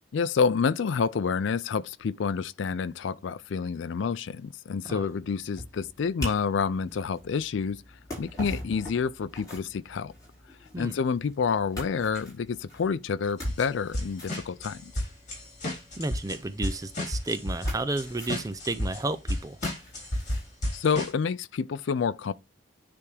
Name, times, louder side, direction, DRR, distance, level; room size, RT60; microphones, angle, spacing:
voice 1, 0.1-7.8 8.2-10.1 10.8-14.9 20.7-22.3, left 5 dB, 75° left, 0.4 m, -28 dB
sound 1, 4.7-20.6, left 1 dB, 20° left, 4.5 m, -44 dB
sound 2, 13.4-13.7 13.9-19.0 19.3-21.1, left 1 dB, 40° left, 4.0 m, -32 dB
voice 2, 16.0-19.6, right 2 dB, 20° right, 0.4 m, -32 dB
9.7 x 3.5 x 3.3 m
head